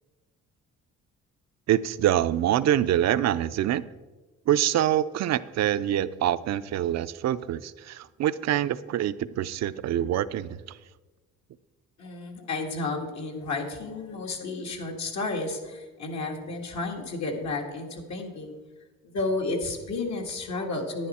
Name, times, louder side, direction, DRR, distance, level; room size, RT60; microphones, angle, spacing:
voice 1, 1.7-3.8 4.5-10.8, right 11 dB, 60° right, 14 dB, 0.5 m, -25 dB
voice 2, 12.0-18.5 19.1-21.1, left 3 dB, 65° left, 1 dB, 1.9 m, -32 dB
10.5 x 10.0 x 4.3 m, 1.2 s
cardioid pair, 90°, 30 cm